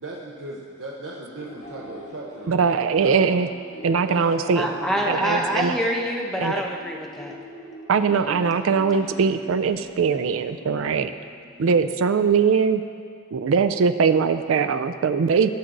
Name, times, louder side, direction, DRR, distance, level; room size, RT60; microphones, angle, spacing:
voice 1, 0.0-3.4 4.0-5.6, right 2 dB, 70° right, -4 dB, 1.0 m, -37 dB
sound 1, 1.3-11.9, equal, 75° left, 2.1 m, -43 dB
voice 2, 2.5-3.5 3.8-4.7 5.1-5.8 6.4-6.5 7.9-11.1 11.6-12.8 13.3-15.5, right 5 dB, 90° right, 10 dB, 0.4 m, -21 dB
voice 3, 4.5-7.4, equal, ahead, -2 dB, 1.0 m, -26 dB
17.0 x 6.4 x 3.9 m, 2.2 s
head